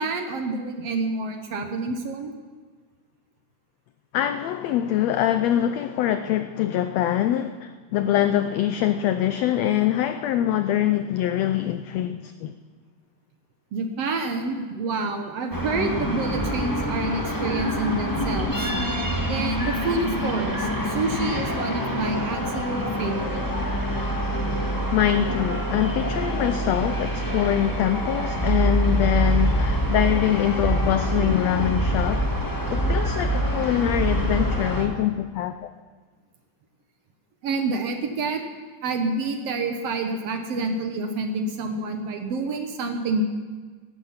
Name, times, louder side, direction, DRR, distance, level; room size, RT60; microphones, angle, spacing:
voice 1, 0.0-2.3 13.7-18.7 19.3-23.4 34.1-34.3 37.4-38.4 38.8-43.2, right 3 dB, 60° right, 5 dB, 1.9 m, -28 dB
voice 2, 4.1-12.5 24.9-32.3 32.7-35.7, left 11 dB, 85° left, 10 dB, 1.5 m, -24 dB
sound 1, 15.5-34.9, equal, 10° left, 1.1 m, -25 dB
17.0 x 12.5 x 5.7 m, 1.4 s
omnidirectional pair, 3.6 m